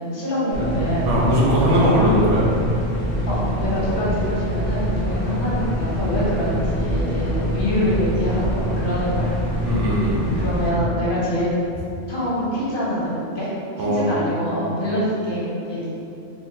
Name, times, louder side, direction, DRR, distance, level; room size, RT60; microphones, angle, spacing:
voice 1, 0.0-1.1 1.7-2.0 3.3-9.7 10.3-11.5 12.1-13.5 13.8-15.9, equal, 50° left, -8 dB, 0.8 m, -25 dB
sound 1, 0.5-10.7, equal, 55° right, 0.9 m, -25 dB
voice 2, 1.1-2.4 3.8-4.0 5.1-5.2 9.6-10.4 13.8-14.0, equal, 75° right, -5 dB, 1.1 m, -20 dB
3.8 x 2.9 x 2.7 m, 2.7 s
omnidirectional pair, 1.3 m